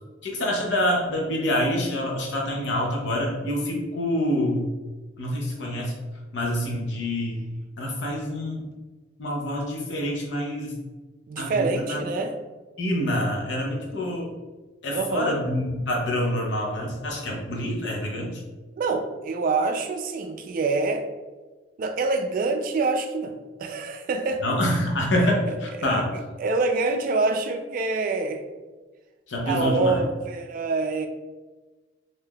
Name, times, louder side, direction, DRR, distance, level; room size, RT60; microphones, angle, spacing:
voice 1, 0.2-4.7 5.2-5.9 6.3-7.4 7.8-8.7 9.2-10.7 11.4-12.1 12.8-14.3 14.8-18.4 24.4-26.1 29.3-30.0, left 1 dB, 70° left, -1 dB, 0.7 m, -26 dB
voice 2, 11.3-12.3 14.9-15.4 18.8-21.1 21.8-24.4 25.8-26.0 26.4-28.4 29.4-31.1, right 3 dB, 50° right, 6 dB, 0.3 m, -26 dB
3.4 x 2.6 x 2.2 m, 1.2 s
head